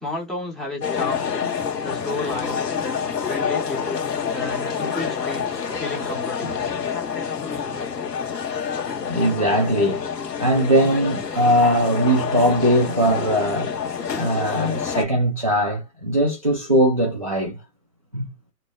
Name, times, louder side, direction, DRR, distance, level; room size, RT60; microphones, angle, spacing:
voice 1, 0.0-1.3 1.8-2.6 3.3-6.6, left 2 dB, ahead, 0.7 m, -32 dB
Audience is coming to the theatre, 0.8-15.0, left 7 dB, 85° left, 1.1 m, -27 dB
voice 2, 9.1-10.0 10.4-13.7 14.2-17.6 18.1-18.3, right 1 dB, 25° right, 0.3 m, -20 dB
2.8 x 2.1 x 2.3 m
figure-of-eight pair, 125°, 48 cm